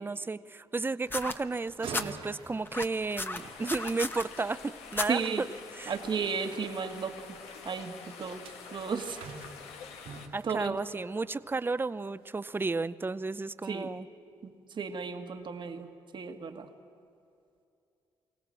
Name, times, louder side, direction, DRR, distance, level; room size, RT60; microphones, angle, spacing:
voice 1, 0.0-5.5 5.7-5.9 10.3-14.1, right 3 dB, 20° right, 15 dB, 0.6 m, -33 dB
sound 1, 1.1-2.1 2.6-4.2 4.9-5.1 6.0-6.1, left 2 dB, 20° left, 1.1 m, -34 dB
sound 2, 1.7-4.3 8.0-11.8 12.2-12.5 13.0-13.1, right 5 dB, 85° right, 3.1 m, -47 dB
sound 3, 3.3-10.3, left 6 dB, 90° left, 1.3 m, -47 dB
voice 2, 5.1-5.4 5.9-7.4 7.7-9.2 10.4-10.8 13.7-13.9 14.4-15.9 16.1-16.7, right 5 dB, 50° right, 6 dB, 1.7 m, -34 dB
24.0 x 17.0 x 7.6 m, 2.6 s
supercardioid pair, 65°, 10 cm